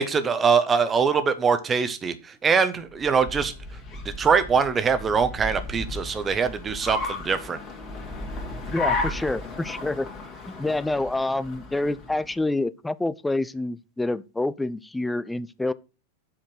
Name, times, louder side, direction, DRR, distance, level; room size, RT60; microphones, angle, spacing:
voice 1, 0.0-2.1 2.4-3.5 4.0-7.6, right 5 dB, 20° right, 1.1 m, -22 dB
Car, 2.9-12.4, left 3 dB, 30° left, 2.4 m, -34 dB
voice 2, 8.7-10.1 10.6-15.7, left 2 dB, 5° left, 0.4 m, -27 dB
7.8 x 4.3 x 6.4 m
figure-of-eight pair, 90°, 0 cm